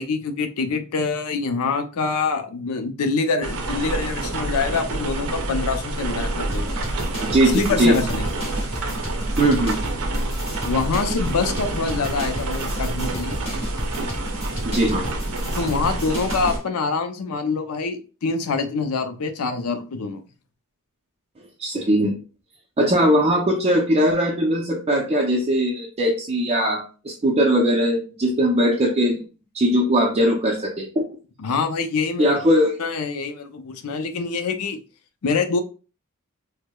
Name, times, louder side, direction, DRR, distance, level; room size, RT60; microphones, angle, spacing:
voice 1, 0.0-6.9 7.5-8.3 10.6-13.4 15.6-20.2 31.4-32.3 32.8-34.8 35.2-35.6, left 4 dB, 75° left, 7 dB, 0.5 m, -25 dB
sound 1, 3.4-16.6, right 2 dB, 75° right, 0.6 m, -27 dB
sound 2, 6.5-16.6, equal, 30° left, 1.6 m, -34 dB
voice 2, 7.2-8.0 9.4-9.8 14.6-15.1 21.6-22.2 22.8-29.2 29.5-31.0 32.2-32.8, equal, 30° right, -1 dB, 0.4 m, -20 dB
4.5 x 2.0 x 2.2 m, 0.35 s
head